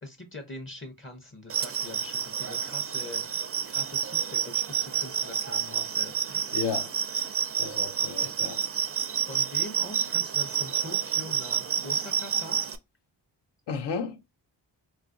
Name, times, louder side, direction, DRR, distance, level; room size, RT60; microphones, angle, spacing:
voice 1, 0.0-3.2 3.7-6.1 8.2-8.3 9.3-12.6, left 2 dB, 30° left, 0.7 m, -42 dB
sound 1, 1.5-12.8, right 8 dB, 35° right, 0.4 m, -29 dB
voice 2, 6.5-7.0 7.6-8.6 13.7-14.2, left 5 dB, 70° left, 0.6 m, -33 dB
3.7 x 2.4 x 2.5 m
cardioid pair, 65°, 43 cm